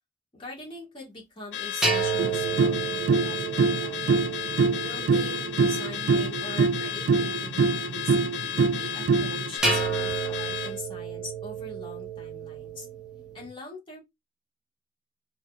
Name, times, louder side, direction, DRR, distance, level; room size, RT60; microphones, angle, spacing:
voice 1, 0.3-4.2 4.8-8.2 8.6-12.9 13.3-14.0, left 2 dB, 30° left, 1.6 m, -42 dB
Car / Alarm, 1.5-10.8, left 9 dB, 85° left, 0.4 m, -34 dB
sound 1, 1.8-6.1 9.6-13.5, right 5 dB, 5° right, 0.9 m, -31 dB
sound 2, 2.2-9.5, right 5 dB, 75° right, 0.3 m, -25 dB
4.1 x 2.9 x 2.4 m
head